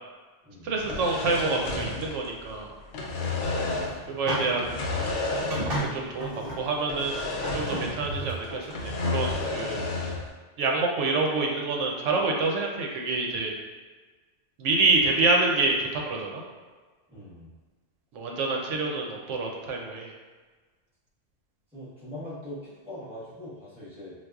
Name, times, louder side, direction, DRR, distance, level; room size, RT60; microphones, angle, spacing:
voice 1, 0.6-2.7 4.1-4.8 5.4-5.6 5.9-7.2 7.5-9.8 10.6-13.5 14.6-16.4 18.1-20.1, right 3 dB, 85° right, 0 dB, 0.9 m, -27 dB
sound 1, 0.8-2.5 2.8-4.0 4.5-5.9 6.2-6.3 6.9-8.1 8.4-10.3, left 3 dB, 75° left, 0.9 m, -31 dB
sound 2, 3.7-4.8 5.3-6.6 7.0-7.1 7.4-8.6, right 1 dB, 60° right, 0.8 m, -33 dB
voice 2, 17.1-17.5 21.7-24.1, left 1 dB, 5° right, -12 dB, 1.1 m, -42 dB
4.0 x 2.3 x 2.3 m, 1.4 s
omnidirectional pair, 1.2 m